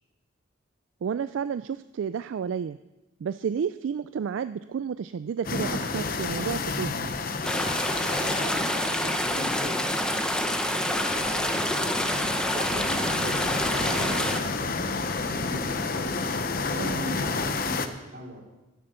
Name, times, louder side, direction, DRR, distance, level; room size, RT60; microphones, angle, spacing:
voice 1, 1.0-2.8 3.2-7.1 16.8-17.1, right 7 dB, 75° right, 13 dB, 0.3 m, -31 dB
sound 1, 5.4-17.9, left 4 dB, 50° left, 0.8 m, -31 dB
sound 2, 7.4-14.4, left 1 dB, 5° left, 0.8 m, -27 dB
voice 2, 7.9-15.8 16.7-18.4, equal, 50° right, -1 dB, 3.0 m, -40 dB
11.0 x 9.9 x 6.7 m, 1.1 s
head